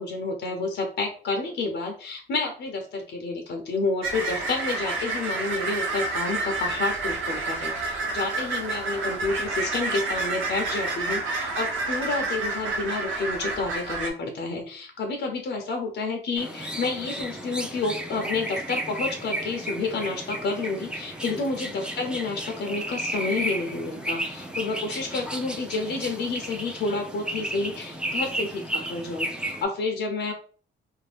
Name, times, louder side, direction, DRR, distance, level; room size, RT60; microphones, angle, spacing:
voice 1, 0.0-30.3, left 3 dB, 60° left, 4 dB, 0.6 m, -30 dB
sound 1, 4.0-14.1, right 3 dB, 80° right, 0.7 m, -29 dB
sound 2, 16.4-29.6, right 1 dB, 5° right, 0.5 m, -33 dB
2.5 x 2.1 x 3.3 m, 0.42 s
cardioid pair, 90°, 20 cm